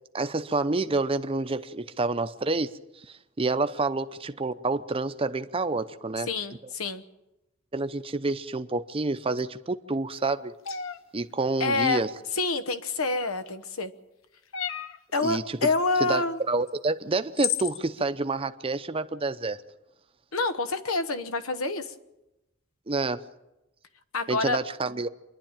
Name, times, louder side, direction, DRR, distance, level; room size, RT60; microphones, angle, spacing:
voice 1, 0.1-2.7 3.4-6.3 7.7-10.5 11.1-12.1 15.2-15.6 16.0-16.2 16.5-19.6 22.9-23.2 24.3-25.1, right 3 dB, 25° right, 0.7 m, -28 dB
voice 2, 6.3-7.0 11.6-12.0 12.3-13.9 15.1-16.4 20.3-21.9 24.1-24.6, left 3 dB, 90° left, 1.1 m, -27 dB
sound 1, 10.6-11.0 13.0-13.5 14.5-15.0 16.7-16.8 17.4-17.8, left 9 dB, 65° left, 0.8 m, -31 dB
26.0 x 11.0 x 8.9 m
head